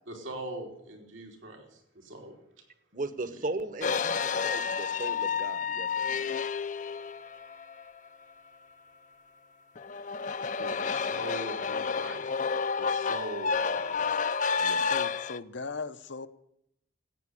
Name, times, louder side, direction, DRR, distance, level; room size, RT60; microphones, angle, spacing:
voice 1, 0.1-2.3 10.3-12.3 12.8-14.1, right 1 dB, 85° right, 3.6 m, -41 dB
voice 2, 2.9-6.2 14.6-14.8, right 2 dB, 45° right, 1.1 m, -37 dB
sound 1, 3.8-7.9 9.7-15.4, left 5 dB, 40° left, 0.5 m, -30 dB
voice 3, 14.9-16.3, left 4 dB, 70° left, 0.8 m, -38 dB
14.5 x 9.4 x 9.8 m
head